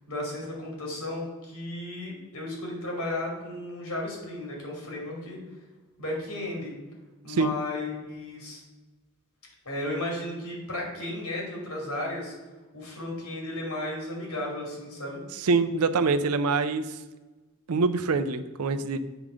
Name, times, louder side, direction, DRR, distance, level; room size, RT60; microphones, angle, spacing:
voice 1, 0.1-5.4 6.0-6.7 7.2-8.6 9.6-12.3 12.7-15.2, left 1 dB, 80° left, -1 dB, 2.7 m, -34 dB
voice 2, 15.4-17.0 17.7-19.0, right 4 dB, 80° right, 11 dB, 0.5 m, -25 dB
8.0 x 3.7 x 6.2 m, 1.2 s
head